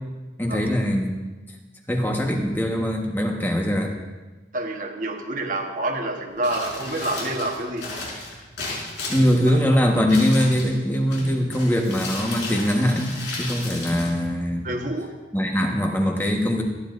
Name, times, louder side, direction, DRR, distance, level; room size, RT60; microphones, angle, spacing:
voice 1, 0.4-1.1 1.9-3.9 9.1-14.7 15.3-16.6, equal, 10° left, 1 dB, 1.3 m, -22 dB
voice 2, 4.5-7.9 9.5-9.6 14.6-15.1, right 2 dB, 45° right, 2 dB, 1.4 m, -28 dB
Crumpling crinkling, 6.3-14.9, left 2 dB, 75° left, 5.1 m, -35 dB
27.0 x 10.0 x 2.6 m, 1.2 s
head